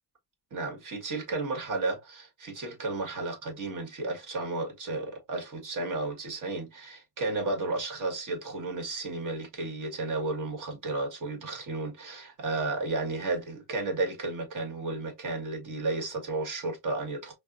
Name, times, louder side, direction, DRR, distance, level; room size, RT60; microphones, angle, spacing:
voice 1, 0.5-17.3, right 3 dB, 55° right, 1.7 m, -33 dB
5.5 x 2.2 x 2.6 m
cardioid pair, 115°, 37 cm